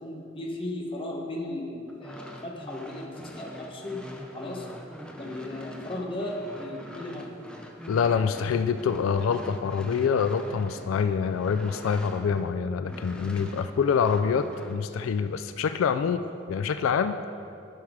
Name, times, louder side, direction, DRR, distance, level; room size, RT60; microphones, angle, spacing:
voice 1, 0.0-4.1 4.3-4.7 5.2-7.4 16.0-16.1, left 1 dB, 25° left, -1 dB, 1.0 m, -36 dB
sound 1, 1.9-12.6 12.9-14.8, equal, 5° left, 0.6 m, -43 dB
voice 2, 7.9-16.2 16.5-17.2, left 6 dB, 85° left, 10 dB, 0.3 m, -26 dB
9.5 x 5.9 x 4.9 m, 2.6 s
head